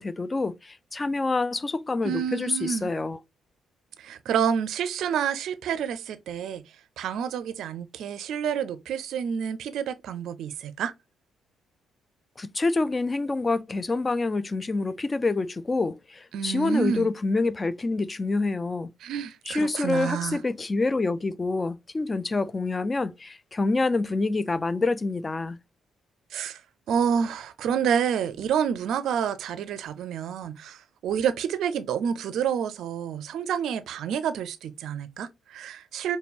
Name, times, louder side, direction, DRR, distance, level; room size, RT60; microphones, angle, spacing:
voice 1, 0.0-3.2 12.4-18.9 19.5-25.6, left 3 dB, 30° left, 0.4 m, -27 dB
voice 2, 2.0-2.9 4.0-6.6 7.0-10.9 16.3-17.1 19.0-20.4 26.3-26.6 26.9-36.2, right 8 dB, 65° right, 0.4 m, -28 dB
5.0 x 2.2 x 2.8 m
figure-of-eight pair, 45°, 0 cm